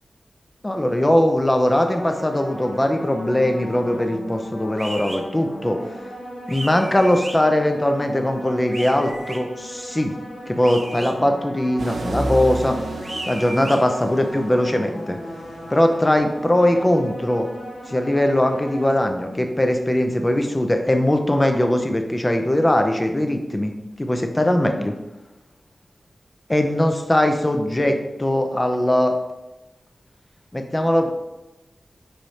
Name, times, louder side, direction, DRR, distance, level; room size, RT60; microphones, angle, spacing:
voice 1, 0.6-5.8 6.5-10.1 10.5-12.8 13.3-15.2 15.7-17.5 17.9-23.7 24.0-24.9 26.5-29.2 30.5-31.1, left 1 dB, 20° left, 5 dB, 0.5 m, -20 dB
sound 1, 1.7-19.0, equal, 90° left, 0.8 m, -37 dB
sound 2, 4.8-5.2 6.5-7.4 8.7-9.4 10.6-11.1 13.0-13.8, right 1 dB, 30° right, 0.7 m, -34 dB
sound 3, 11.8-19.6 20.0-20.4, right 2 dB, 90° right, 0.4 m, -34 dB
4.6 x 3.1 x 2.7 m, 1.0 s
wide cardioid pair, 90°, 0 cm